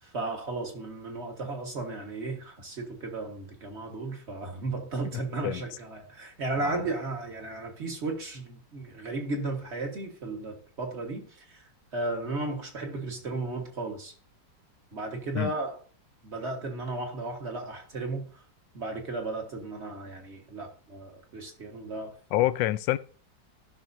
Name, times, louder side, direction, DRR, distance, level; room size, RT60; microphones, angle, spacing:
voice 1, 0.0-14.1 14.9-15.8 16.2-18.4 18.7-22.2, right 2 dB, 40° right, 1.8 m, -35 dB
voice 2, 5.0-5.6 6.6-6.8 15.3-15.5 22.3-23.0, left 15 dB, 85° left, 1.3 m, -27 dB
15.0 x 6.1 x 2.7 m
omnidirectional pair, 2.0 m